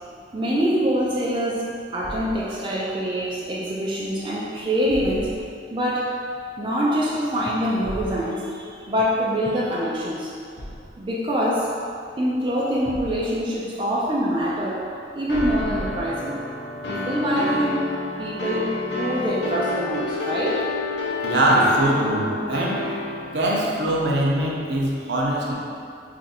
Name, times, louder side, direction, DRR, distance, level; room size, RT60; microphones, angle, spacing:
voice 1, 0.3-1.7 1.9-5.4 5.7-6.2 6.6-10.3 11.0-11.7 12.2-16.5 16.9-20.7, equal, 25° right, -6 dB, 0.3 m, -25 dB
Thump thud, 2.0-2.5 4.8-5.6 7.8-8.3 10.5-11.0 12.8-13.5 15.3-16.2, equal, 80° left, 0.8 m, -35 dB
sound 1, 15.3-23.6, left 3 dB, 60° left, 0.4 m, -29 dB
voice 2, 21.2-22.8 23.3-25.5, right 1 dB, 70° right, -3 dB, 0.6 m, -22 dB
3.0 x 2.5 x 4.2 m, 2.4 s
head